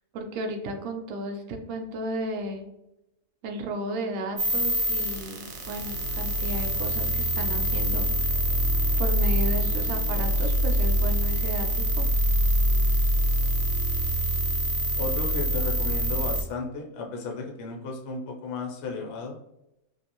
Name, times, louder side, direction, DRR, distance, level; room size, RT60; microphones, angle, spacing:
voice 1, 0.1-2.6 3.4-8.4 9.0-12.1, right 1 dB, 65° right, 3 dB, 0.8 m, -34 dB
sound 1, 4.4-16.4, equal, 85° right, 1.1 m, -25 dB
voice 2, 15.0-19.4, left 3 dB, 60° left, 0 dB, 0.8 m, -34 dB
2.6 x 2.3 x 2.8 m, 0.87 s
omnidirectional pair, 1.5 m